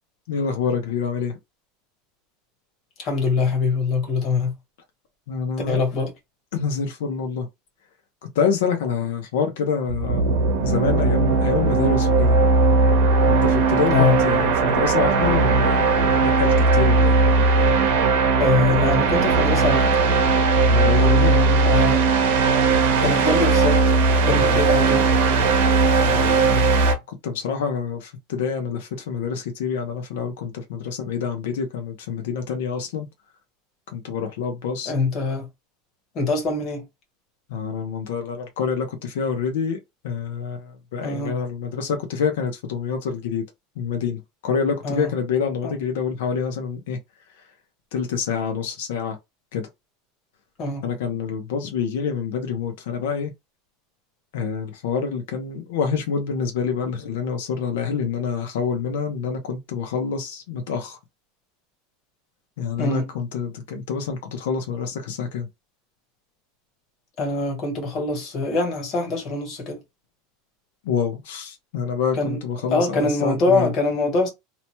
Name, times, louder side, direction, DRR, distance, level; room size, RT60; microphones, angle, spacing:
voice 1, 0.3-1.3 5.3-5.8 6.5-7.5 8.4-10.3 10.6-12.4 13.3-17.2 20.5-21.3 24.3-24.6 26.0-26.9 27.2-33.1 33.9-34.9 37.5-39.8 40.0-43.4 43.8-47.0 47.9-49.2 49.5-49.7 50.8-53.3 54.3-61.0 62.6-65.5 70.9-73.7, left 6 dB, 80° left, 0.6 m, -27 dB
voice 2, 3.0-4.5 5.7-6.1 13.9-14.2 18.4-20.0 21.0-22.1 23.0-23.8 24.2-25.1 34.9-35.4 36.1-36.8 41.0-41.4 44.8-45.1 45.6-45.7 50.6-50.8 62.8-63.1 67.2-69.8 72.1-72.4 72.7-74.3, left 3 dB, 35° left, 1.1 m, -23 dB
sound 1, 9.9-26.9, right 3 dB, 75° right, 0.8 m, -18 dB
2.8 x 2.1 x 2.9 m
supercardioid pair, 165°, 0 cm